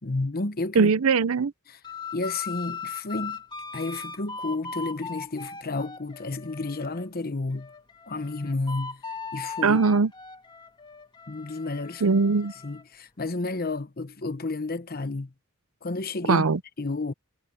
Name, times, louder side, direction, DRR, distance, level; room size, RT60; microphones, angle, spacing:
voice 1, 0.0-0.9 2.1-3.4 3.7-7.7 8.1-9.0 9.3-9.8 11.3-12.0 12.6-15.3 15.8-16.4 16.8-17.1, left 3 dB, 45° left, 1.0 m, -31 dB
voice 2, 0.7-1.5 9.6-10.1 12.0-12.5 16.3-16.6, right 4 dB, 70° right, 0.6 m, -20 dB
sound 1, 1.8-7.1 7.5-12.8, left 5 dB, 20° left, 1.9 m, -39 dB
head